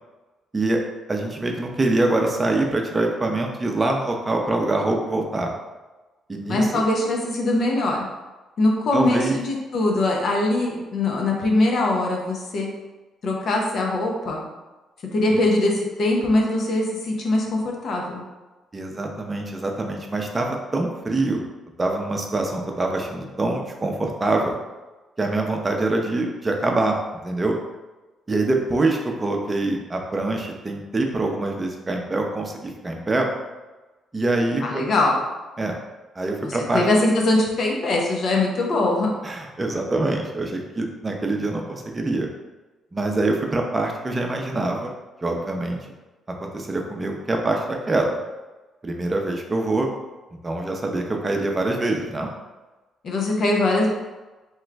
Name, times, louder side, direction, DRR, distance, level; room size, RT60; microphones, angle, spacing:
voice 1, 1.1-5.5 6.3-6.8 8.9-9.4 15.3-15.4 18.7-21.4 21.8-24.6 25.2-27.5 28.3-33.3 34.1-34.8 35.6-35.7 36.2-36.8 39.2-42.3 42.9-44.9 45.2-45.8 46.4-48.2 48.8-49.9 50.4-52.3, right 2 dB, 30° right, 1 dB, 0.6 m, -24 dB
voice 2, 6.5-8.0 8.6-12.7 13.2-14.4 15.1-18.2 34.6-35.1 36.4-39.1 53.0-53.9, left 2 dB, 60° left, -1 dB, 0.7 m, -22 dB
3.0 x 2.4 x 3.3 m, 1.2 s
supercardioid pair, 60°, 0 cm